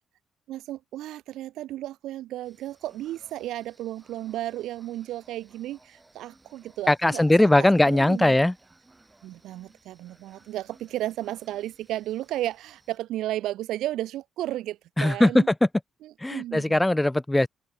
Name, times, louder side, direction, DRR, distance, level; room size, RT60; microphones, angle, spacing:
voice 1, 0.5-8.5 9.2-15.5 16.0-16.8, right 14 dB, 85° right, 0.8 m, -34 dB
sound 1, 2.4-13.0, right 2 dB, 15° right, 7.5 m, -59 dB
voice 2, 6.9-8.5 15.0-15.4 16.2-17.5, left 1 dB, 10° left, 0.5 m, -20 dB
open air
cardioid pair, 90°, 0 cm